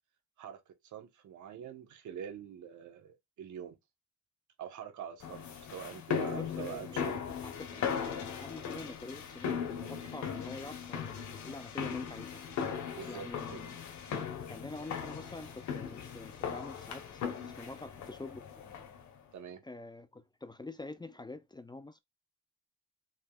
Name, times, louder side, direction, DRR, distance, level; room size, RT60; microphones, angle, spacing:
voice 1, 0.4-3.8 4.6-7.2 13.0-13.7 19.3-19.6, right 9 dB, 75° right, 1.3 m, -45 dB
sound 1, 5.2-19.1, left 7 dB, 70° left, 1.5 m, -38 dB
voice 2, 6.1-7.0 7.4-11.2 11.4-12.4 13.1-13.8 14.5-18.4 19.6-22.0, left 2 dB, 15° left, 0.5 m, -46 dB
6.1 x 3.4 x 2.4 m
cardioid pair, 90°, 30 cm